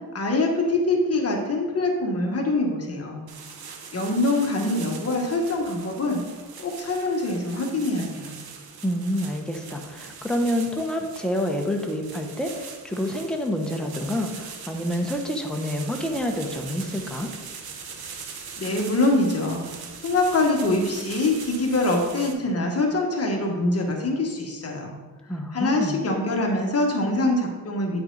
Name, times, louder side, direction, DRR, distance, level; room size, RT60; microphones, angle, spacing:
voice 1, 0.1-3.2 3.9-6.2 6.6-8.4 18.6-19.6 20.0-24.9 25.5-28.0, left 2 dB, 40° left, 1 dB, 1.5 m, -24 dB
sound 1, 3.3-22.3, right 6 dB, 80° right, 1.1 m, -41 dB
voice 2, 8.8-17.3 25.3-26.0, equal, ahead, 2 dB, 0.9 m, -28 dB
9.0 x 6.0 x 4.0 m, 1.3 s
wide cardioid pair, 125°, 37 cm